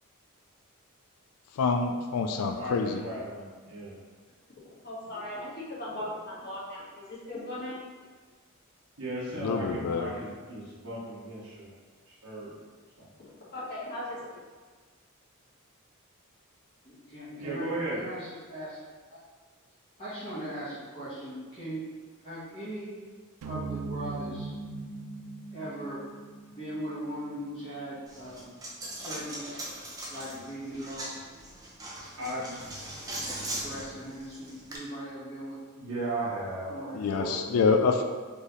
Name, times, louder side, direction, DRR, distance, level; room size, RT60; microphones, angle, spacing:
voice 1, 1.6-3.1 9.3-10.1 36.9-38.0, left 4 dB, 80° left, 4 dB, 0.4 m, -26 dB
voice 2, 2.4-3.9 9.0-11.7 12.1-12.5 13.0-13.1 17.4-18.0 32.2-32.5 35.8-37.8, right 1 dB, 65° right, -10 dB, 1.0 m, -36 dB
voice 3, 4.8-7.8 13.2-14.4, left 1 dB, 45° left, -7 dB, 1.4 m, -38 dB
voice 4, 16.8-18.8 19.1-19.2 20.0-21.8 22.2-22.9 23.4-24.5 25.5-26.0 26.5-28.5 28.9-29.5 30.1-31.2 32.2-32.6 33.2-35.6 36.7-37.2, right 1 dB, 25° left, -12 dB, 1.4 m, -39 dB
sound 1, 23.4-27.7, right 3 dB, 90° right, 0.3 m, -40 dB
Coin (dropping), 28.1-34.8, right 1 dB, 15° right, 0.6 m, -40 dB
4.3 x 3.4 x 3.1 m, 1.4 s
head